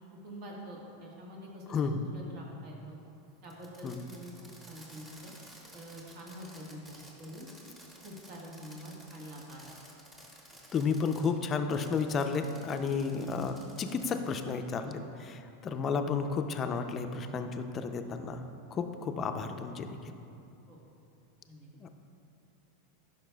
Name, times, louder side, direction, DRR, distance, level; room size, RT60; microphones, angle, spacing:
voice 1, 0.2-3.0 3.4-5.3 5.7-7.5 8.0-9.6 20.7-20.8 21.5-21.7, equal, 55° right, -2 dB, 1.3 m, -46 dB
voice 2, 1.7-2.1 3.8-4.0 10.7-18.4 18.7-20.1 21.8-21.9, left 5 dB, 30° left, 7 dB, 0.4 m, -32 dB
Fireworks, 3.4-11.3 11.7-14.6, right 1 dB, 15° right, 1.2 m, -54 dB
10.5 x 5.3 x 2.3 m, 2.7 s
hypercardioid pair, 105°, 0 cm